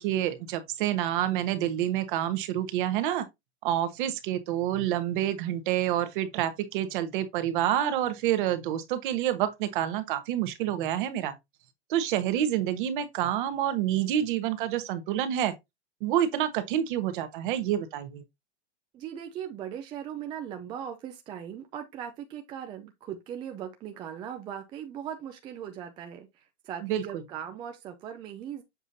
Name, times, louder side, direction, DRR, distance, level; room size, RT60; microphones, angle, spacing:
voice 1, 0.0-3.3 3.6-11.4 11.9-15.5 16.0-18.2 26.8-27.2, right 11 dB, 45° right, 1.3 m, -28 dB
voice 2, 18.9-28.6, right 9 dB, 15° right, 0.4 m, -39 dB
7.3 x 5.5 x 2.7 m
hypercardioid pair, 150°, 35 cm